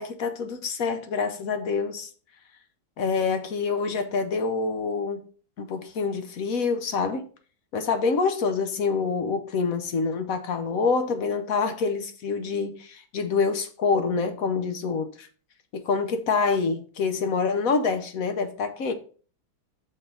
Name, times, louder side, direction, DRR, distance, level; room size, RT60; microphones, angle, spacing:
voice 1, 0.0-2.1 3.0-5.2 5.6-7.2 7.7-15.3 15.7-18.9, left 4 dB, 60° left, 1.0 m, -26 dB
6.3 x 4.6 x 5.3 m
omnidirectional pair, 2.2 m